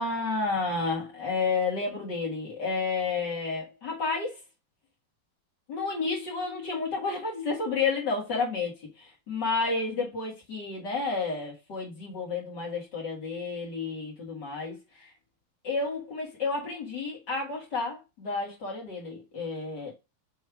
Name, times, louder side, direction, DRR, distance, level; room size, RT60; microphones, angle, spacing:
voice 1, 0.0-4.4 5.7-15.1 15.6-19.9, left 4 dB, 35° left, 2.0 m, -31 dB
6.6 x 3.1 x 4.7 m
omnidirectional pair, 4.2 m